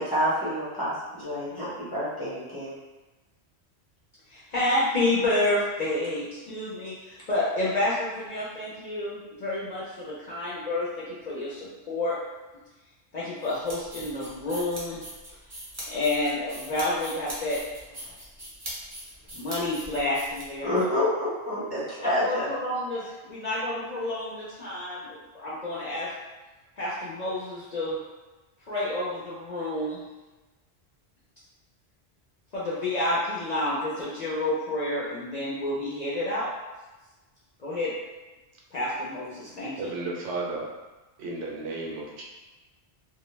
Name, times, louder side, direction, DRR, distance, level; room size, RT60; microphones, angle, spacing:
voice 1, 0.0-2.7 20.6-22.5, left 1 dB, 25° left, -10 dB, 0.8 m, -28 dB
voice 2, 4.3-12.2 13.1-15.0 15.9-17.6 19.3-20.7 22.2-26.1 26.8-28.0 28.7-30.0 32.5-36.5 37.6-37.9 38.7-39.7, left 2 dB, 50° left, -8 dB, 0.5 m, -29 dB
sound 1, 13.4-20.8, equal, 20° right, 0.6 m, -41 dB
voice 3, 39.8-40.7 41.2-42.2, right 3 dB, 75° right, -2 dB, 0.8 m, -33 dB
2.2 x 2.1 x 3.0 m, 1.1 s
omnidirectional pair, 1.1 m